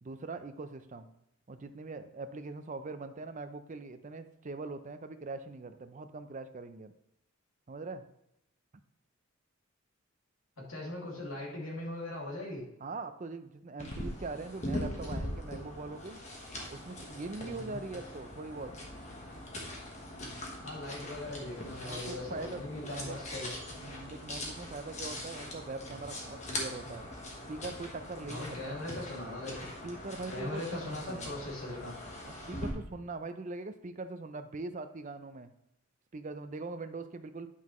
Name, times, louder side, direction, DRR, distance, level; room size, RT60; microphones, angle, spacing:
voice 1, 0.0-1.1 1.5-6.9 7.7-8.0 12.8-16.2 16.7-18.7 21.8-23.2 23.8-27.1 27.5-28.8 29.8-31.3 32.2-35.5 36.1-37.5, right 3 dB, 35° right, 9 dB, 0.5 m, -42 dB
voice 2, 10.7-12.6 17.6-17.8 20.6-23.5 28.3-29.7 30.3-31.9, left 2 dB, 70° left, -3 dB, 2.4 m, -40 dB
Footsteps on forest way, 13.8-32.7, left 1 dB, 30° left, 1.3 m, -41 dB
9.4 x 5.6 x 3.1 m, 0.82 s
head